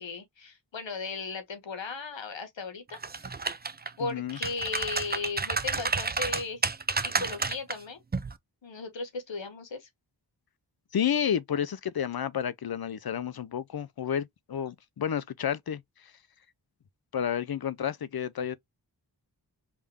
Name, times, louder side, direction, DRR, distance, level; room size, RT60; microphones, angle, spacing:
voice 1, 0.0-3.4 4.0-6.6 7.0-8.0 8.6-9.9, left 4 dB, 85° left, 1.2 m, -36 dB
sound 1, 2.9-3.9 4.3-7.8 8.1-8.3, right 4 dB, 25° right, 0.4 m, -30 dB
voice 2, 4.0-4.4 10.9-15.8 17.1-18.6, left 8 dB, 55° left, 0.5 m, -30 dB
3.6 x 2.6 x 3.3 m
wide cardioid pair, 55°, 44 cm